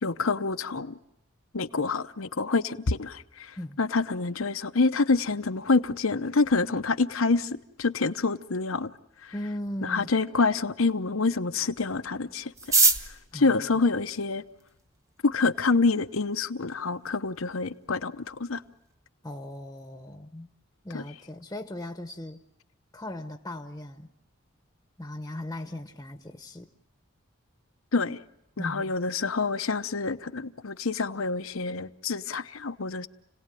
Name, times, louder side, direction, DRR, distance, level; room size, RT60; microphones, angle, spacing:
voice 1, 0.0-1.0 1.5-8.9 9.2-9.3 9.8-12.5 13.3-14.4 15.2-18.6 20.9-21.0 27.9-28.2 28.6-33.1, left 3 dB, 85° left, 0.9 m, -27 dB
voice 2, 9.3-10.1 13.3-13.6 19.2-20.5 20.8-22.4 22.9-24.1 25.0-26.7 28.6-28.9, left 1 dB, 15° left, 0.9 m, -38 dB
sound 1, 12.5-14.8 15.6-15.7 15.9-16.0 16.3-16.8 17.1-17.2 17.4-17.8 18.1-18.3 18.6-18.9, right 3 dB, 15° right, 0.9 m, -25 dB
30.0 x 18.0 x 9.1 m
head